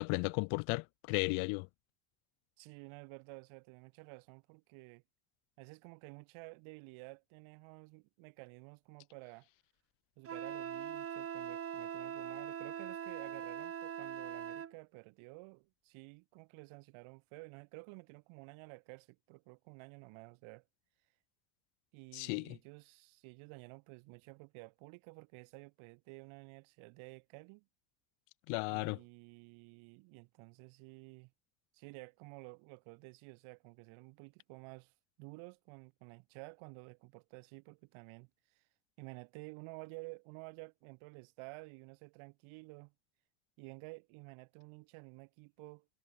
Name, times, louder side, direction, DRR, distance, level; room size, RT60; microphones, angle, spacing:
voice 1, 0.0-1.7 22.1-22.6 28.5-29.0, left 35 dB, 75° left, 1.3 m, -34 dB
voice 2, 2.6-5.0 5.6-9.5 10.2-20.6 21.9-27.7 28.7-31.3 31.7-34.9 35.2-38.6 39.0-42.9 43.6-45.9, right 28 dB, 75° right, 4.0 m, -52 dB
Wind instrument woodwind instrument, 10.3-14.7, right 8 dB, 25° right, 2.2 m, -42 dB
cardioid pair, 145°, 49 cm